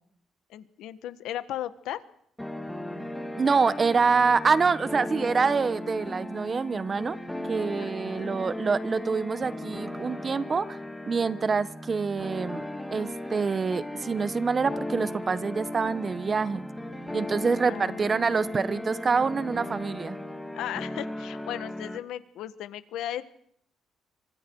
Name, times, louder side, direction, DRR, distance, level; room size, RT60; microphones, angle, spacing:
voice 1, 0.5-2.0 7.8-8.4 17.7-18.8 20.5-23.2, left 12 dB, 85° left, 12 dB, 1.5 m, -37 dB
sound 1, 2.4-22.0, left 1 dB, 5° left, 2.0 m, -36 dB
voice 2, 3.4-7.2 7.4-10.8 11.0-16.7 17.1-20.2, right 5 dB, 30° right, 16 dB, 1.0 m, -26 dB
27.5 x 25.0 x 4.7 m, 0.69 s
cardioid pair, 125°, 0 cm